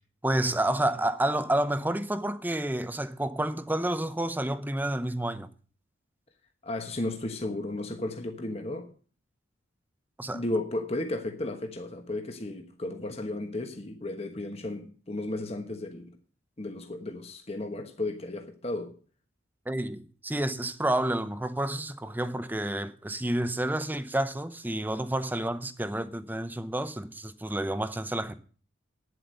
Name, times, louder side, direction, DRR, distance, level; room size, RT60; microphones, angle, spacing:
voice 1, 0.2-5.5 10.2-10.4 19.7-28.3, right 1 dB, 10° right, 0.7 m, -29 dB
voice 2, 6.6-8.9 10.3-16.2 16.6-18.9, left 2 dB, 30° left, 1.2 m, -34 dB
10.0 x 7.9 x 6.5 m
head